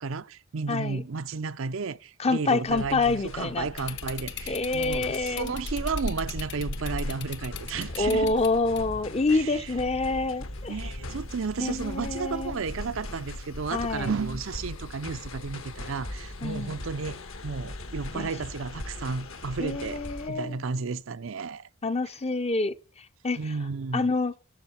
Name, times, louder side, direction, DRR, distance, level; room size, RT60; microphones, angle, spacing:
voice 1, 0.0-8.3 9.3-9.6 10.7-20.0 20.3-21.7 23.4-24.1, right 4 dB, 60° right, 0.6 m, -33 dB
voice 2, 0.7-1.0 2.2-3.7 4.5-5.5 8.0-10.8 11.6-12.6 13.7-14.1 16.4-16.8 18.1-18.3 19.6-20.6 21.8-23.5 23.9-24.3, left 3 dB, 25° left, 0.6 m, -27 dB
sound 1, 2.6-20.3, left 1 dB, 65° left, 1.5 m, -40 dB
sound 2, 3.8-9.2, left 3 dB, 50° left, 1.1 m, -37 dB
12.5 x 7.2 x 4.3 m
head